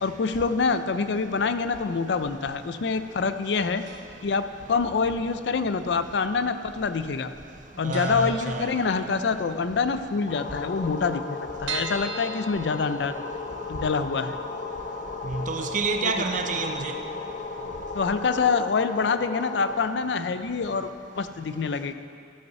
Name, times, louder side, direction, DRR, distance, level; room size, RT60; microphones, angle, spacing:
voice 1, 0.0-3.8 4.2-7.3 7.8-13.1 13.7-14.4 16.0-16.1 17.9-20.9 21.1-21.9, left 5 dB, 65° left, 0.4 m, -26 dB
sound 1, 3.9-4.4 4.6-4.7 5.7-6.4 6.7-6.8 7.1-7.2 7.6-7.7 7.9-9.2 9.6-9.7 10.0-10.1 10.3-10.4 10.9-13.5 13.9-14.0 14.4-14.5, right 5 dB, 85° right, 0.9 m, -38 dB
voice 2, 7.8-9.0 15.2-17.0, right 4 dB, 45° right, 0.6 m, -29 dB
sound 2, 10.3-19.7, left 4 dB, 45° left, 0.9 m, -35 dB
14.0 x 5.3 x 6.8 m
head